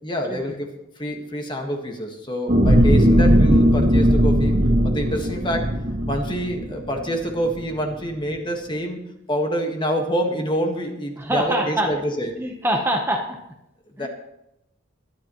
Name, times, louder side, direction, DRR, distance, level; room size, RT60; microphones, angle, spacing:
voice 1, 0.0-0.7 1.0-4.6 4.8-5.8 6.1-12.3 14.0-14.1, equal, 25° left, 3 dB, 1.6 m, -27 dB
sound 1, 2.5-7.0 7.5-7.6, equal, 45° right, 2.1 m, -18 dB
voice 2, 11.2-11.9 12.4-13.4 14.0-14.1, right 1 dB, 10° right, 1 dB, 1.0 m, -24 dB
22.0 x 10.5 x 3.1 m, 0.86 s
head